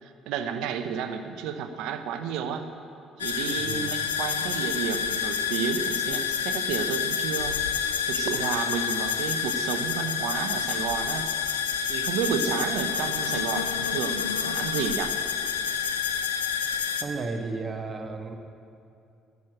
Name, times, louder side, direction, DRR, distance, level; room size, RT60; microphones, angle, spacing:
voice 1, 0.0-2.7 3.2-7.6 8.1-11.3 11.9-15.1, right 7 dB, 65° right, 8 dB, 0.8 m, -31 dB
sound 1, 3.2-17.0, left 7 dB, 85° left, 0.6 m, -28 dB
voice 2, 3.6-3.9 17.0-18.4, right 3 dB, 35° right, 5 dB, 1.3 m, -33 dB
12.0 x 9.5 x 8.8 m, 2.5 s
figure-of-eight pair, 50°, 0 cm